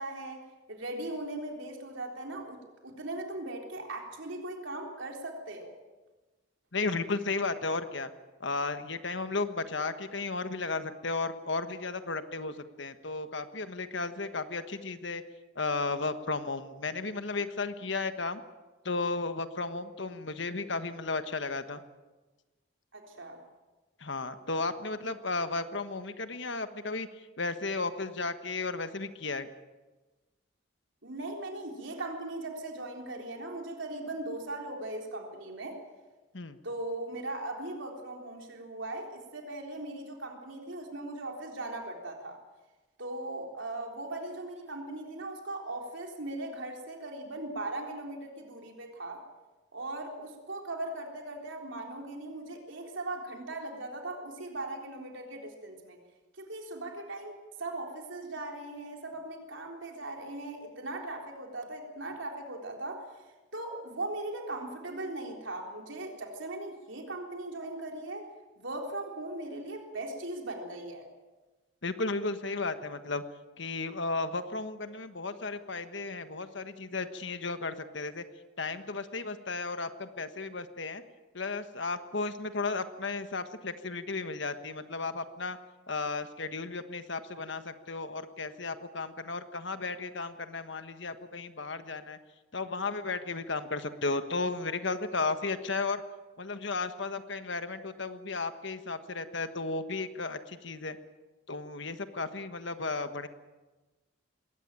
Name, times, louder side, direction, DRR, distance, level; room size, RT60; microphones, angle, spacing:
voice 1, 0.0-5.8 22.9-23.4 31.0-35.8 36.6-42.4 43.0-49.2 49.7-56.0 56.3-63.1 63.5-68.3 68.6-71.1, right 2 dB, 70° right, 2 dB, 3.8 m, -39 dB
voice 2, 6.7-8.1 8.4-15.2 15.5-18.4 18.8-21.8 24.0-27.1 27.4-29.5 36.3-36.6 71.8-73.2 73.6-78.2 78.6-81.0 81.3-85.6 85.9-92.2 92.5-96.0 96.4-101.0 101.5-103.3, left 3 dB, 60° left, 10 dB, 1.4 m, -34 dB
21.0 x 18.0 x 9.0 m, 1.2 s
head